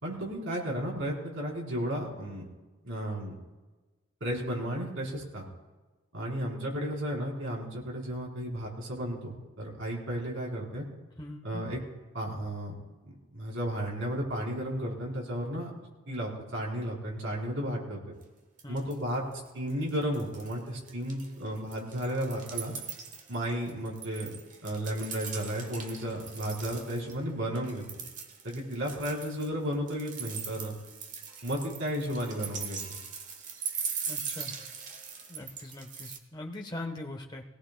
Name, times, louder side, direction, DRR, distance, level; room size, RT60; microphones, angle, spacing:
voice 1, 0.0-2.5 2.8-3.3 4.2-5.5 6.1-10.8 11.4-11.8 12.1-12.8 13.0-15.7 16.1-18.1 18.7-19.2 19.5-22.7 23.3-24.3 24.6-27.8 28.4-30.7 31.4-32.8, equal, 65° right, -3 dB, 4.0 m, -33 dB
voice 2, 11.2-11.6 18.6-18.9 34.1-34.5 35.3-37.4, left 2 dB, 20° left, 2 dB, 1.1 m, -41 dB
sound 1, 18.2-18.3 18.6-19.1 19.5-20.6 20.9-27.1 27.5-36.2, right 6 dB, 35° right, 1.2 m, -40 dB
21.5 x 18.0 x 2.2 m, 1.2 s
head